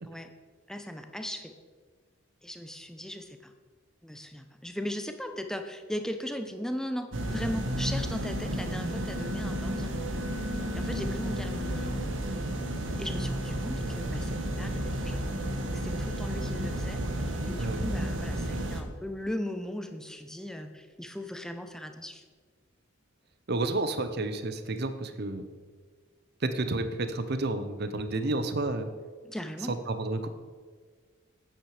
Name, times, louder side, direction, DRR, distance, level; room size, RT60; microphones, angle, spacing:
voice 1, 0.7-1.5 2.4-3.5 4.0-10.0 10.7-11.9 13.0-15.4 15.7-22.2 29.2-29.8, equal, 5° left, 7 dB, 0.6 m, -38 dB
sound 1, 7.1-18.8, right 1 dB, 70° right, 1.2 m, -32 dB
voice 2, 23.5-25.4 26.4-28.9 29.7-30.3, right 2 dB, 50° right, 10 dB, 0.7 m, -30 dB
9.0 x 8.9 x 4.9 m, 1.5 s
head